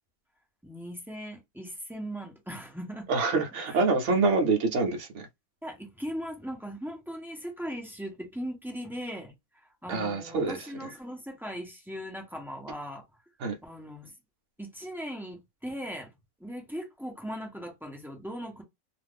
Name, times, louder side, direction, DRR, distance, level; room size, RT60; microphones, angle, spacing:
voice 1, 0.6-3.1 3.7-3.8 5.6-13.0 13.6-14.1 14.6-16.1 16.4-18.6, equal, 5° right, 0.4 m, -39 dB
voice 2, 3.1-5.3 9.9-10.9 13.4-13.6, right 3 dB, 60° right, 0.9 m, -26 dB
2.5 x 2.5 x 3.5 m
omnidirectional pair, 1.5 m